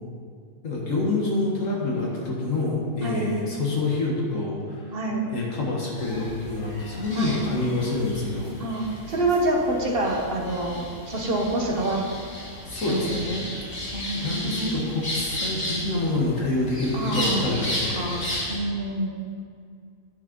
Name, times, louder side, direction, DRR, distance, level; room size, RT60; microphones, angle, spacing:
voice 1, 0.6-4.9 5.3-8.5 12.7-13.3 14.1-18.5, left 2 dB, 55° left, -3 dB, 1.9 m, -27 dB
voice 2, 4.9-5.3 7.2-7.4 8.6-12.0 12.9-13.4 13.9-14.8 16.9-17.6 17.9-19.1, right 2 dB, 40° right, 0 dB, 1.4 m, -27 dB
sound 1, 6.0-18.6, left 1 dB, 75° left, 3.1 m, -34 dB
10.0 x 6.4 x 5.3 m, 2.2 s
omnidirectional pair, 1.6 m